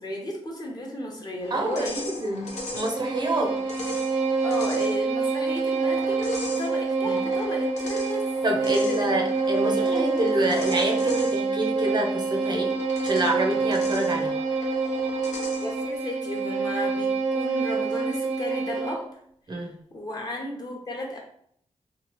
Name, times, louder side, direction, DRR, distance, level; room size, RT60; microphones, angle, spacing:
voice 1, 0.0-2.1 3.4-3.8 4.4-9.3 9.6-10.6 11.0-11.2 15.6-19.1 19.5-21.2, left 1 dB, 35° left, -1 dB, 0.7 m, -34 dB
sound 1, 1.4-15.9, left 2 dB, 75° left, 0.7 m, -39 dB
voice 2, 1.5-3.6 7.0-7.2 8.4-12.8 13.0-14.4 19.5-19.8, right 1 dB, 35° right, 2 dB, 0.5 m, -27 dB
Bowed string instrument, 2.5-19.1, right 4 dB, 85° right, 0.6 m, -27 dB
3.0 x 2.2 x 2.9 m, 0.65 s
wide cardioid pair, 110°, 12 cm